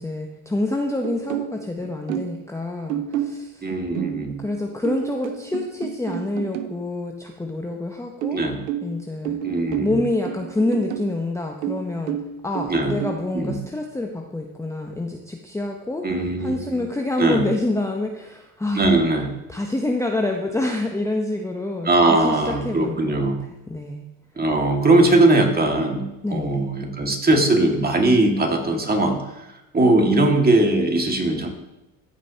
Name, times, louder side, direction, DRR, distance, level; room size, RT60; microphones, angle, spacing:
voice 1, 0.0-3.6 4.4-8.4 8.8-9.4 9.8-12.2 12.4-16.0 16.4-18.9 19.5-23.1 23.7-24.0 26.2-26.6, left 2 dB, 5° left, 2 dB, 0.8 m, -27 dB
sound 1, 1.0-2.4 2.9-6.8 8.2-11.2 11.6-13.2, right 10 dB, 90° right, 0.7 m, -30 dB
voice 2, 3.6-4.4 8.3-8.6 9.4-10.0 12.7-13.0 13.3-13.6 16.0-16.9 17.2-17.5 18.7-19.3 21.8-23.4 24.4-29.4 29.7-31.5, right 2 dB, 20° right, 2 dB, 2.0 m, -20 dB
14.5 x 5.1 x 2.8 m, 0.96 s
hypercardioid pair, 70°, 41 cm